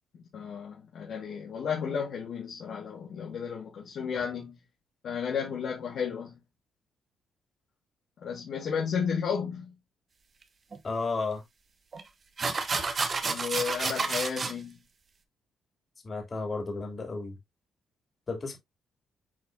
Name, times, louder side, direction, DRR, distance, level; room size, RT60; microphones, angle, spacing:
voice 1, 0.1-4.6 5.0-6.4 8.2-9.7 13.2-14.8, left 6 dB, 65° left, 2.0 m, -33 dB
sound 1, 10.7-10.8 11.9-12.0 12.4-14.5, right 4 dB, 40° right, 1.2 m, -30 dB
voice 2, 10.8-11.4 16.0-17.4 18.3-18.6, left 3 dB, 35° left, 3.2 m, -32 dB
8.4 x 4.2 x 2.8 m
cardioid pair, 90°, 0 cm